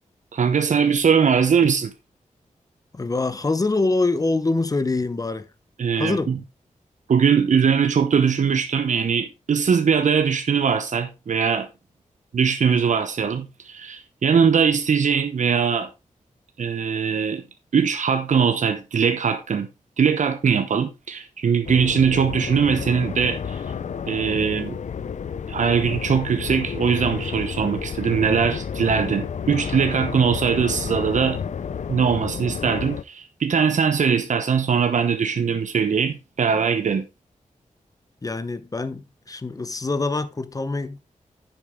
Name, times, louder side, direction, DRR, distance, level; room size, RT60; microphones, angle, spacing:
voice 1, 0.3-1.9 5.8-6.4 7.1-11.7 12.3-15.9 16.6-17.4 17.7-19.7 20.0-23.6 24.1-24.8 25.5-31.4 31.9-37.1, right 6 dB, 65° right, 1.0 m, -21 dB
voice 2, 2.9-5.5 6.0-6.3 38.2-41.0, left 3 dB, 25° left, 0.9 m, -24 dB
sound 1, 21.6-33.0, left 7 dB, 65° left, 0.5 m, -31 dB
10.0 x 7.5 x 3.6 m
wide cardioid pair, 125°, 13 cm